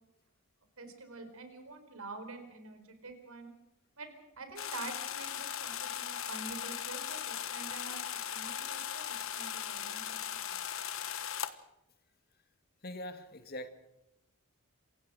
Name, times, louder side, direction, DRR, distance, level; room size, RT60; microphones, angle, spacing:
voice 1, 0.8-3.5 4.0-8.0 8.3-10.6, right 3 dB, 75° right, 4.4 m, -47 dB
sound 1, 4.6-11.5, left 10 dB, 65° left, 1.2 m, -38 dB
voice 2, 12.8-13.7, left 1 dB, 45° left, 2.0 m, -42 dB
27.5 x 16.5 x 6.3 m
head